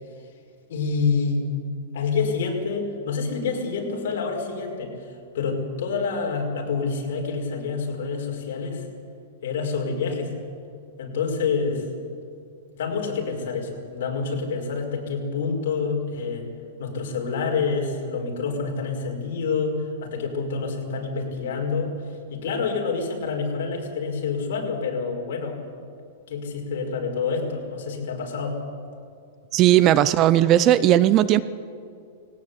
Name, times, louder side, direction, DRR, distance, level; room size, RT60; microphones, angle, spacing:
voice 1, 0.7-1.5 1.9-8.9 9.4-10.3 11.0-11.9 12.8-16.5 16.8-25.6 26.3-28.6, left 4 dB, 60° left, 1 dB, 5.1 m, -27 dB
voice 2, 29.5-31.4, right 12 dB, 25° right, 16 dB, 0.4 m, -17 dB
19.5 x 17.5 x 8.3 m, 2.4 s
supercardioid pair, 175°, 0 cm